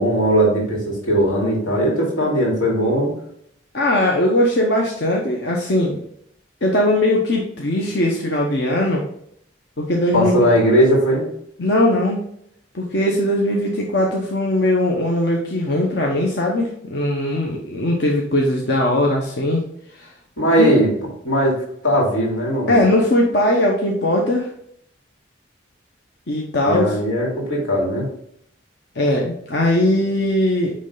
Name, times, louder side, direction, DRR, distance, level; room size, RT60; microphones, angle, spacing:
voice 1, 0.0-3.1 10.1-11.2 20.4-20.9 21.2-22.8 26.6-28.1, equal, 90° left, -2 dB, 2.7 m, -18 dB
voice 2, 3.7-6.0 6.6-9.0 9.8-10.5 11.6-12.2 12.7-19.6 20.0-20.1 20.6-20.7 22.7-24.5 26.3-27.0 28.9-30.7, left 1 dB, 60° left, -1 dB, 0.9 m, -19 dB
9.5 x 3.3 x 3.8 m, 0.71 s
head